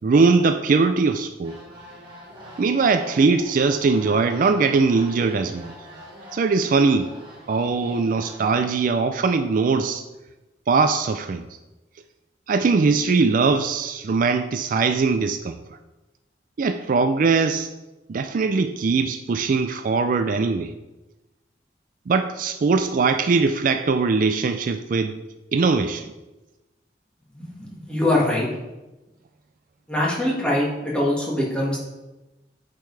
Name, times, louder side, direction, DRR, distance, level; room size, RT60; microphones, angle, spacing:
voice 1, 0.0-1.6 2.6-5.7 6.3-7.1 7.5-10.0 10.7-11.5 12.5-15.6 16.6-17.7 18.1-20.7 22.1-25.1 25.5-26.1, right 4 dB, 50° right, 9 dB, 0.4 m, -21 dB
sound 1, 1.4-8.5, equal, 25° right, 1.7 m, -43 dB
voice 2, 27.3-28.5 29.9-31.8, left 1 dB, 5° left, -5 dB, 1.8 m, -23 dB
8.9 x 5.4 x 3.3 m, 1.0 s
head